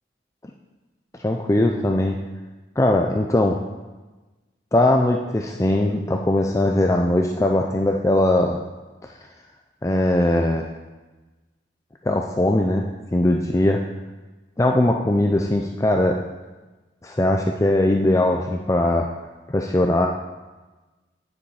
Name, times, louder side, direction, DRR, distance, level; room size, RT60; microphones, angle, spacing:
voice 1, 1.2-2.2 2.8-3.6 4.7-8.6 9.0-9.1 9.8-10.7 12.0-12.8 13.1-13.8 14.6-16.2 17.0-19.1 19.5-20.1, left 1 dB, 15° left, 2 dB, 0.4 m, -20 dB
9.7 x 7.1 x 4.7 m, 1.2 s
head